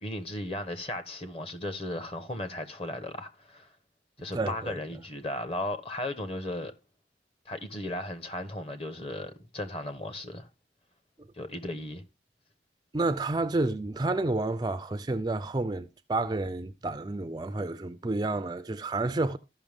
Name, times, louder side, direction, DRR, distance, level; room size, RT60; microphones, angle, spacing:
voice 1, 0.0-3.7 4.2-6.7 7.5-10.5 11.4-12.0, left 1 dB, 30° left, 1.1 m, -36 dB
voice 2, 4.3-4.7 12.9-19.4, right 2 dB, 25° right, 0.4 m, -30 dB
14.0 x 5.7 x 3.5 m
head